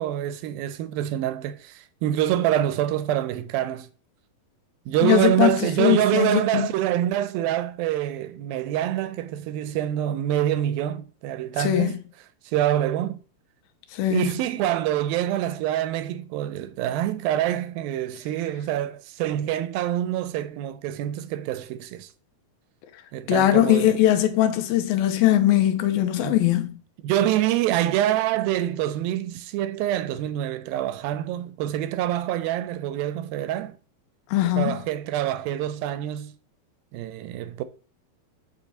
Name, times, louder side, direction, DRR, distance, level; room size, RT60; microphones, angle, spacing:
voice 1, 0.0-3.9 4.9-12.0 12.5-13.2 14.1-22.1 23.1-24.0 26.0-26.4 27.0-33.8 34.6-36.3 36.9-37.6, right 12 dB, 80° right, 2.3 m, -26 dB
voice 2, 5.0-6.7 11.6-11.9 13.9-14.3 23.3-26.8 34.3-34.8, left 12 dB, 80° left, 2.6 m, -21 dB
7.3 x 5.0 x 6.6 m
omnidirectional pair, 4.3 m